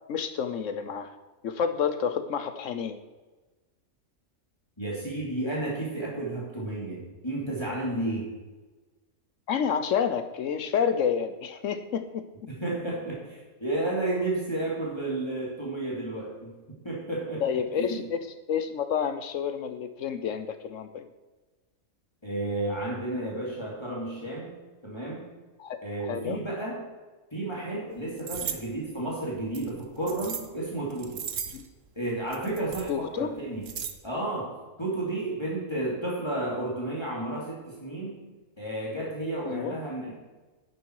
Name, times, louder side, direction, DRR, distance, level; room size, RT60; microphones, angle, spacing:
voice 1, 0.1-1.1 1.4-3.0 9.5-12.3 17.4-18.2 18.5-21.0 25.6-25.8 26.1-26.4 31.5-31.7 32.9-33.3 39.4-39.7, left 7 dB, 75° left, 10 dB, 1.1 m, -29 dB
voice 2, 4.8-8.3 12.5-16.5 16.8-17.4 17.7-18.0 22.2-24.5 24.8-25.2 25.8-26.8 27.3-31.2 32.0-33.6 34.0-34.5 34.8-38.2 38.6-40.1, right 2 dB, 20° left, -5 dB, 3.0 m, -32 dB
sound 1, 28.2-28.6 29.5-30.5 30.9-31.7 32.3-32.9 33.4-33.9, right 7 dB, 75° right, 1.3 m, -36 dB
10.5 x 9.8 x 4.7 m, 1.2 s
omnidirectional pair, 1.4 m